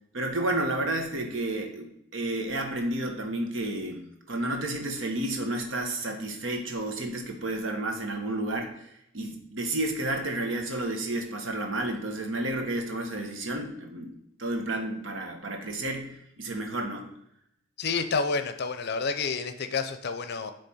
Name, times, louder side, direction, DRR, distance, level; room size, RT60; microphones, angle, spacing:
voice 1, 0.1-8.9 9.1-17.1, right 1 dB, 75° right, 3 dB, 1.0 m, -31 dB
voice 2, 17.8-20.5, left 4 dB, 55° left, 9 dB, 0.5 m, -29 dB
8.2 x 3.3 x 4.2 m, 0.76 s
head